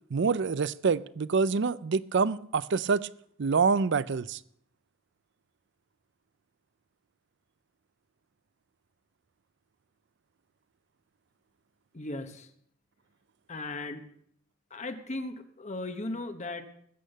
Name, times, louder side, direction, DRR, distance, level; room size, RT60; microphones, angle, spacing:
voice 1, 0.1-3.1 3.4-4.4, right 5 dB, 60° right, 0.5 m, -26 dB
voice 2, 11.9-12.5 13.5-14.1 14.7-16.6, left 2 dB, 35° left, 1.1 m, -37 dB
20.0 x 8.6 x 6.6 m
head